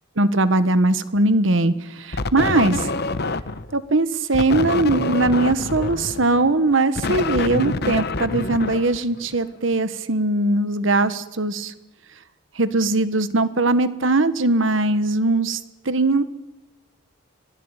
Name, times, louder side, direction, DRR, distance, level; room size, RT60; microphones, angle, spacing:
voice 1, 0.2-2.9 3.7-11.7 12.5-15.6 15.8-16.2, right 2 dB, 70° right, 13 dB, 1.5 m, -20 dB
sound 1, 2.1-3.7 4.3-9.5, left 3 dB, 55° left, 1.0 m, -26 dB
25.5 x 18.5 x 9.0 m, 0.99 s
head